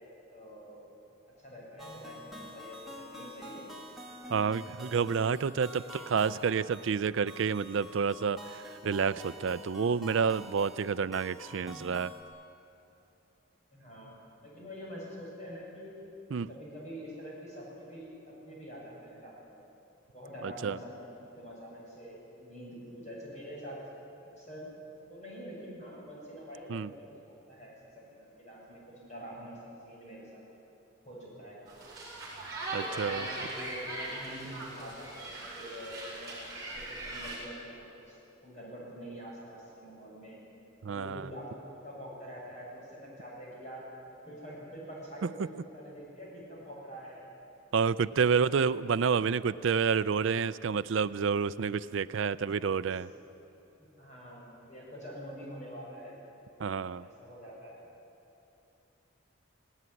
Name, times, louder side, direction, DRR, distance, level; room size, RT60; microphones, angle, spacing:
voice 1, 0.3-0.9 1.4-3.6 4.2-4.4 5.7-6.1 13.7-15.9 16.5-19.6 20.1-23.8 24.4-24.7 25.1-27.2 27.5-30.4 31.0-31.7 32.7-40.4 40.9-43.9 44.3-47.3 48.1-48.5 52.8-53.0 54.0-56.2 56.9-57.8, equal, 35° left, -4 dB, 7.3 m, -46 dB
sound 1, 1.8-12.2, equal, ahead, 2.1 m, -48 dB
voice 2, 4.3-12.1 16.3-16.5 20.4-20.8 26.7-26.9 32.7-33.3 40.8-41.3 45.2-45.3 47.7-53.1 56.6-57.0, right 6 dB, 65° right, 15 dB, 0.4 m, -29 dB
sound 2, 31.7-37.4, right 2 dB, 15° right, 6.6 m, -40 dB
18.5 x 18.0 x 9.8 m, 2.8 s
head